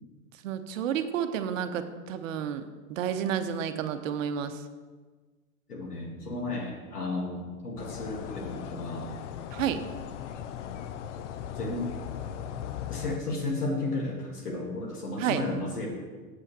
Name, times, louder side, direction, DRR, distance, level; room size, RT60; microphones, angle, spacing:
voice 1, 0.4-4.6 9.5-9.8 15.2-15.4, right 9 dB, 60° right, 10 dB, 0.9 m, -31 dB
voice 2, 5.7-9.1 11.6-11.9 12.9-15.9, left 2 dB, 85° left, 0 dB, 2.1 m, -33 dB
sound 1, 7.8-13.2, left 9 dB, 50° left, 0.6 m, -38 dB
7.7 x 5.5 x 6.1 m, 1.4 s
hypercardioid pair, 105°, 45 cm